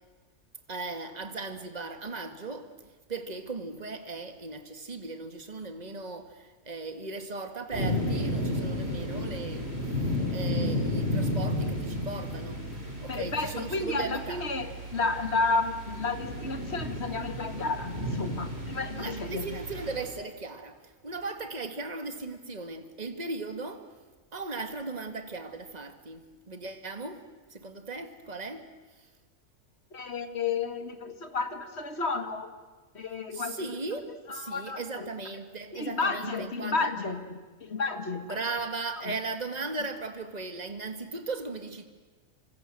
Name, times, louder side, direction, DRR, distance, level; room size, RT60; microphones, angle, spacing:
voice 1, 0.7-2.7 3.1-14.7 19.0-23.9 24.3-27.2 27.5-28.7 29.0-29.1 33.3-36.8 38.3-41.9, right 3 dB, 30° right, 2.1 m, -37 dB
sound 1, 7.7-20.1, left 1 dB, 45° right, 6.0 m, -33 dB
voice 2, 13.1-19.6 29.9-32.5 32.9-33.7 34.3-35.1 35.7-38.4 39.0-39.2, left 4 dB, 45° left, 2.3 m, -32 dB
29.5 x 25.5 x 7.8 m
omnidirectional pair, 1.5 m